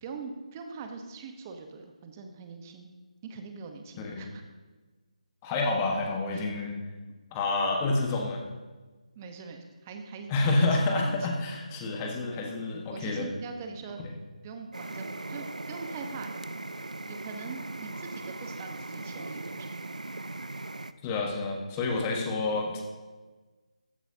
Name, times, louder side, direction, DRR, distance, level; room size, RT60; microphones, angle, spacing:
voice 1, 0.0-2.9 3.2-4.4 6.3-6.5 9.2-11.2 12.9-14.0 14.4-16.3 17.1-19.7, right 5 dB, 20° right, 5 dB, 1.0 m, -42 dB
voice 2, 5.4-6.8 7.3-8.4 10.3-13.3 14.0-14.1 21.0-22.8, left 3 dB, 20° left, 1 dB, 1.4 m, -28 dB
sound 1, 14.7-20.9, right 2 dB, 80° right, 0.5 m, -39 dB
15.0 x 10.5 x 2.8 m, 1.3 s
figure-of-eight pair, 150°, 4 cm